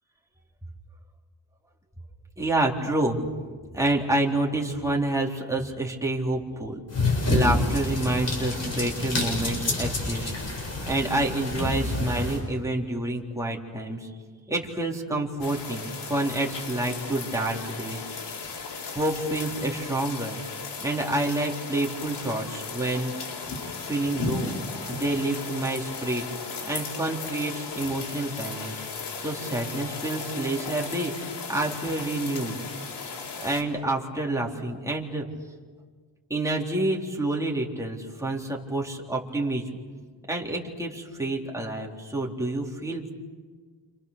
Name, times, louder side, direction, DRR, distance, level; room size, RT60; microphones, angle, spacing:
voice 1, 2.4-3.2 3.7-6.8 7.3-14.1 14.5-18.0 18.9-20.4 20.8-23.1 23.8-24.5 24.9-26.2 26.7-28.7 29.2-32.6 33.4-35.2 36.3-39.6 40.3-43.1, right 2 dB, 5° right, -2 dB, 3.8 m, -28 dB
sound 1, 6.9-12.4, left 2 dB, 40° left, 7.8 m, -28 dB
sound 2, 15.4-33.6, left 4 dB, 75° left, 4.1 m, -36 dB
29.0 x 28.0 x 6.8 m, 1.5 s
wide cardioid pair, 135°, 41 cm